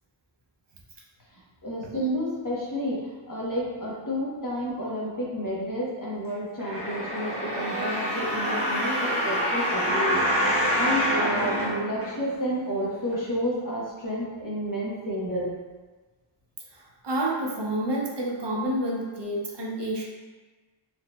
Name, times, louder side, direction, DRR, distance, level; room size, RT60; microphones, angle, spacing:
voice 1, 1.3-8.9 9.2-15.5, equal, 45° left, -5 dB, 1.0 m, -31 dB
sound 1, 6.6-12.5 13.1-13.2, equal, 30° right, 1.0 m, -26 dB
voice 2, 16.7-20.0, right 1 dB, 65° right, -2 dB, 0.7 m, -29 dB
4.2 x 2.9 x 2.2 m, 1.3 s
wide cardioid pair, 45°, 47 cm